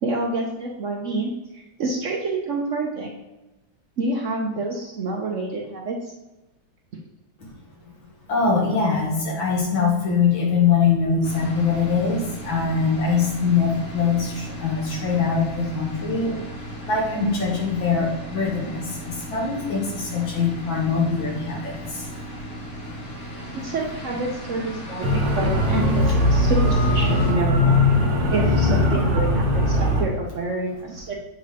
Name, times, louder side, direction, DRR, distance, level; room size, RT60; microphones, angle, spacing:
voice 1, 0.0-3.1 4.0-6.1 23.5-27.8 28.3-31.1, right 2 dB, 70° right, -1 dB, 0.7 m, -28 dB
voice 2, 8.3-16.4 16.8-22.0, left 5 dB, 70° left, -3 dB, 2.3 m, -23 dB
sound 1, 11.2-27.3, equal, 40° left, 1.6 m, -36 dB
sound 2, 25.0-30.0, left 1 dB, 55° right, 1.5 m, -19 dB
7.7 x 3.8 x 3.3 m, 1.0 s
omnidirectional pair, 2.2 m